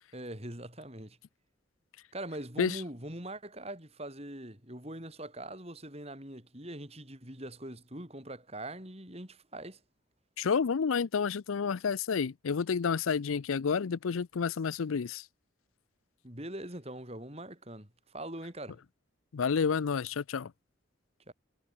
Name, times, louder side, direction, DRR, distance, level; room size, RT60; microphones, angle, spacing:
voice 1, 0.1-1.2 2.1-9.8 16.2-18.8 21.3-21.4, right 1 dB, 30° right, 6.8 m, -42 dB
voice 2, 10.4-15.2 19.3-20.5, left 6 dB, 85° left, 0.5 m, -30 dB
head